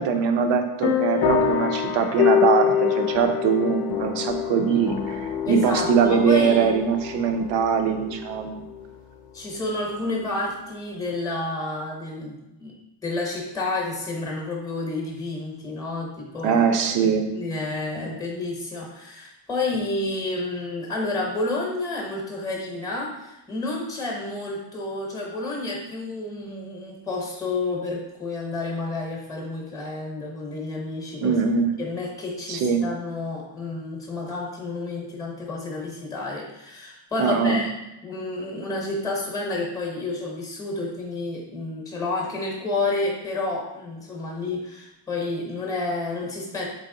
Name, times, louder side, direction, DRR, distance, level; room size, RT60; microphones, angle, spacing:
voice 1, 0.0-8.6 16.4-17.3 18.0-18.1 19.7-19.8 31.2-31.7 32.5-32.9 37.2-37.6, right 6 dB, 70° right, 6 dB, 0.7 m, -22 dB
sound 1, 0.8-8.9, left 8 dB, 55° left, 0.5 m, -25 dB
voice 2, 5.4-6.7 9.3-12.8 13.0-16.6 17.0-31.4 31.8-37.7 38.0-46.6, left 2 dB, 10° left, -1 dB, 0.8 m, -30 dB
4.0 x 3.1 x 3.7 m, 0.93 s
cardioid pair, 160°, 46 cm